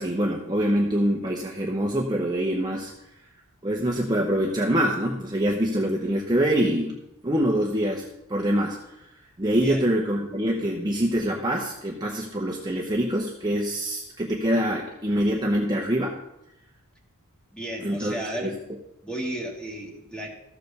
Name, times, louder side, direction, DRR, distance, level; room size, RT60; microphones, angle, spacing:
voice 1, 0.0-2.9 3.6-7.0 7.2-8.0 8.3-16.2 17.8-18.5, equal, 20° right, -1 dB, 0.9 m, -25 dB
voice 2, 17.5-18.6 19.0-20.3, right 1 dB, 5° left, -1 dB, 1.9 m, -33 dB
13.5 x 5.1 x 6.6 m, 0.88 s
head